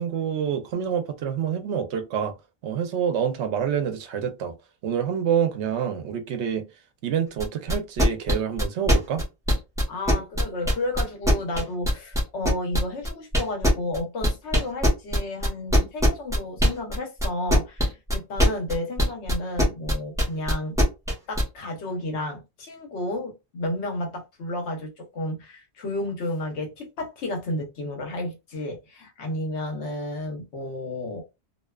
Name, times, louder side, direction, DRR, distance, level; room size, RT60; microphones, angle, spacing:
voice 1, 0.0-2.3 2.6-4.6 4.8-6.6 7.0-9.2, right 8 dB, 75° right, 0.9 m, -27 dB
sound 1, 7.4-21.4, equal, 5° right, 0.7 m, -21 dB
voice 2, 9.9-20.8 21.3-31.2, left 1 dB, 80° left, 1.1 m, -32 dB
2.6 x 2.2 x 2.2 m
omnidirectional pair, 1.2 m